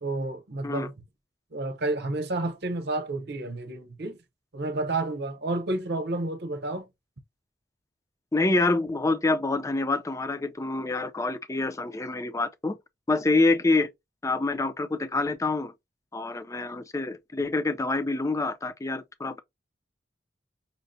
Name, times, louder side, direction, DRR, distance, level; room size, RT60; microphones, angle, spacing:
voice 1, 0.0-0.9 1.5-4.2 4.5-6.9, right 2 dB, 60° right, 0.8 m, -30 dB
voice 2, 8.3-12.8 13.1-13.9 14.2-15.7 16.1-19.4, left 2 dB, 15° left, 0.4 m, -26 dB
5.6 x 2.1 x 2.6 m
head